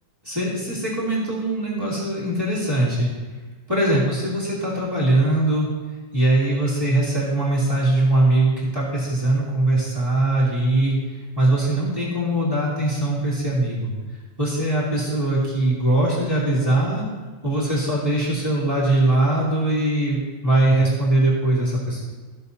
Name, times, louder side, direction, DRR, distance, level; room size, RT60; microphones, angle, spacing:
voice 1, 0.2-3.1 3.7-5.7 6.1-10.9 11.3-13.9 14.4-17.1 17.4-20.2 20.4-22.0, right 2 dB, 15° right, -9 dB, 2.8 m, -21 dB
15.5 x 7.0 x 2.8 m, 1.3 s
omnidirectional pair, 1.8 m